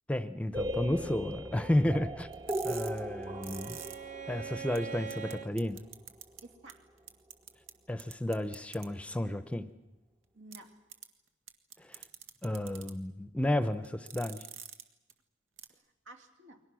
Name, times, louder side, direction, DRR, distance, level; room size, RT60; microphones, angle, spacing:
voice 1, 0.1-2.3 2.6-3.8 4.3-5.8 7.9-9.7 11.9-12.0 12.4-14.4, left 1 dB, 5° left, 12 dB, 0.7 m, -32 dB
sound 1, 0.5-6.3, right 1 dB, 20° right, 0.9 m, -39 dB
Bowed string instrument, 2.3-5.5, right 7 dB, 40° right, 1.1 m, -44 dB
voice 2, 2.3-2.7 3.1-3.2 6.4-6.9 10.3-10.8 15.7-16.6, right 2 dB, 75° right, 4 dB, 3.3 m, -54 dB
sound 2, 2.3-4.0 4.4-4.5 4.8-4.9 5.1-5.3 5.6-6.4 6.7-6.8 7.1-7.7 8.0-8.8 10.5-10.6 10.9-11.1 11.5-12.9 13.8-14.8 15.1-15.2 15.6-15.7, right 9 dB, 90° right, 1.9 m, -45 dB
29.5 x 23.5 x 6.3 m, 1.1 s
head